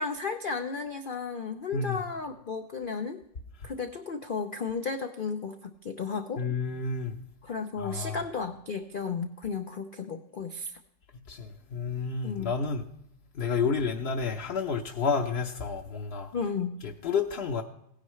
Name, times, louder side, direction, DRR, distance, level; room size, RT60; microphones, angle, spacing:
voice 1, 0.0-3.2 3.6-6.4 7.4-10.8 12.2-12.5 16.3-16.8, left 5 dB, 85° left, 7 dB, 0.4 m, -34 dB
voice 2, 6.4-7.2 7.8-8.2 11.3-12.9 13.3-16.3 16.8-17.6, left 5 dB, 50° left, 1 dB, 0.8 m, -30 dB
17.0 x 10.0 x 3.1 m, 0.79 s
omnidirectional pair, 1.8 m